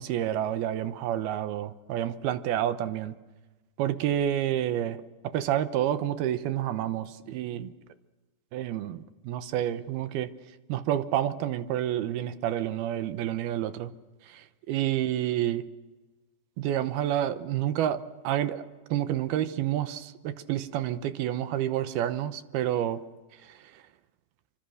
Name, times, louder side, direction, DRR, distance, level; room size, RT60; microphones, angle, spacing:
voice 1, 0.0-3.2 3.8-7.7 8.5-10.3 10.7-13.9 14.2-15.6 16.6-18.6 18.9-23.0 23.4-23.8, right 11 dB, 75° right, 12 dB, 2.7 m, -29 dB
28.0 x 25.0 x 6.5 m, 1.2 s
omnidirectional pair, 4.8 m